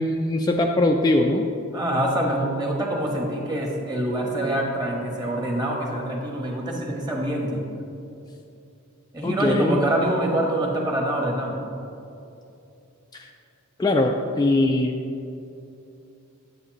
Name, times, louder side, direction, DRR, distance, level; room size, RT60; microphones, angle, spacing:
voice 1, 0.0-1.5 9.2-9.8 13.1-13.3 13.8-14.9, left 2 dB, 20° left, 2 dB, 0.3 m, -21 dB
voice 2, 1.7-7.6 9.1-11.6, right 1 dB, 20° right, -1 dB, 1.3 m, -25 dB
11.0 x 8.0 x 3.0 m, 2.7 s
head